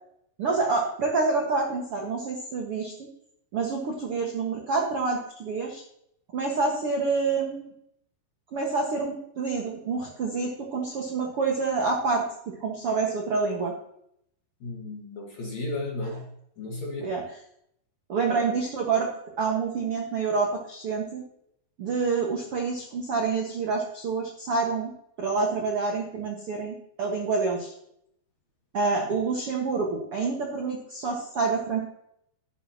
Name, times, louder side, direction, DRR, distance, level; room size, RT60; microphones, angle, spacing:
voice 1, 0.4-3.1 3.5-5.8 6.3-7.7 8.5-13.7 16.0-16.1 17.0-17.4 18.1-19.1 19.4-21.2 21.8-24.9 25.2-27.7 28.7-31.8, right 4 dB, 65° right, 0 dB, 1.4 m, -27 dB
voice 2, 14.6-16.3 16.6-17.1, left 2 dB, 55° left, -1 dB, 2.2 m, -34 dB
12.0 x 11.0 x 2.9 m, 0.72 s
omnidirectional pair, 5.0 m